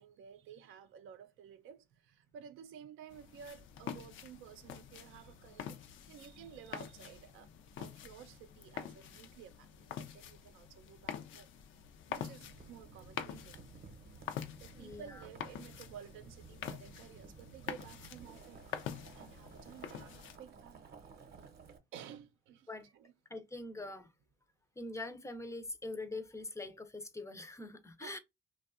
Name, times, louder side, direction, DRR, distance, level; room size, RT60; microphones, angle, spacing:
voice 1, 0.0-7.5 7.8-11.5 12.1-13.6 14.6-18.9 19.1-20.9 21.4-21.5 21.9-23.1 28.0-28.2, right 8 dB, 85° right, 0.4 m, -53 dB
sound 1, 3.1-20.4, left 9 dB, 80° left, 0.4 m, -46 dB
Boiling, 12.4-21.8, right 5 dB, 55° right, 0.7 m, -55 dB
voice 2, 14.7-15.3 22.7-22.9 23.3-24.1 24.8-28.2, left 2 dB, 15° left, 0.4 m, -43 dB
2.6 x 2.2 x 2.3 m
cardioid pair, 90°, 20 cm